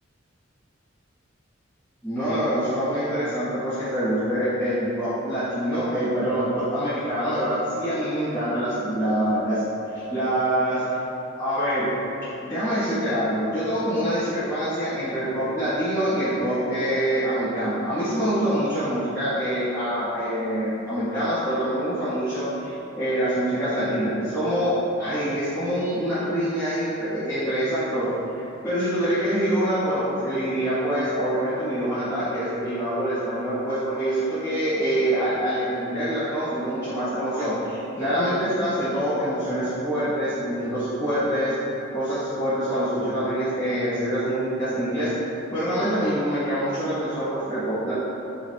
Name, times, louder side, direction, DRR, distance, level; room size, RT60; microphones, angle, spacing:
voice 1, 2.0-9.6 9.9-11.0 11.3-11.9 12.4-28.1 28.3-41.5 41.9-45.1 45.5-47.9, equal, 15° left, -17 dB, 1.5 m, -25 dB
5.5 x 3.0 x 2.9 m, 3.0 s
head